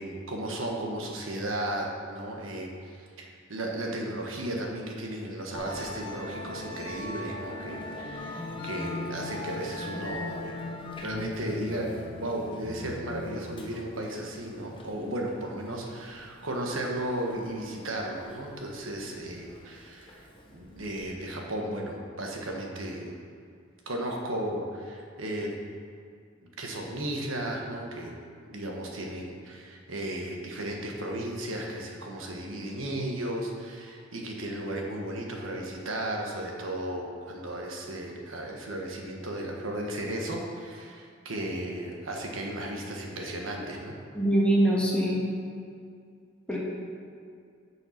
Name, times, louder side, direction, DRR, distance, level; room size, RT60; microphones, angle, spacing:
voice 1, 0.0-10.6 11.0-20.3 20.5-23.2 23.9-25.6 26.4-28.1 28.4-43.9, right 1 dB, 70° right, 0 dB, 1.4 m, -35 dB
Musical instrument, 5.5-21.0, left 2 dB, 25° left, 1.1 m, -40 dB
voice 2, 44.1-45.2 46.5-46.6, right 1 dB, 5° left, -5 dB, 1.8 m, -23 dB
7.8 x 6.5 x 5.9 m, 2.3 s
head